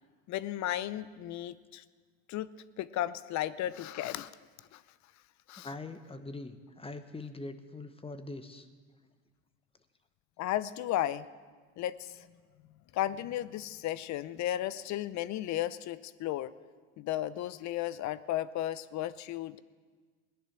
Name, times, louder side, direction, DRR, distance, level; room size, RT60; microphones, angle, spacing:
voice 1, 0.3-1.8 2.3-2.5 2.8-4.3 4.7-4.8 5.5-5.7 10.4-11.3 11.8-12.3 12.9-16.5 17.0-19.6, left 13 dB, 50° left, 17 dB, 0.7 m, -34 dB
voice 2, 5.6-8.7, left 2 dB, 15° left, 9 dB, 1.3 m, -43 dB
18.0 x 10.5 x 6.0 m, 1.5 s
hypercardioid pair, 75°, 36 cm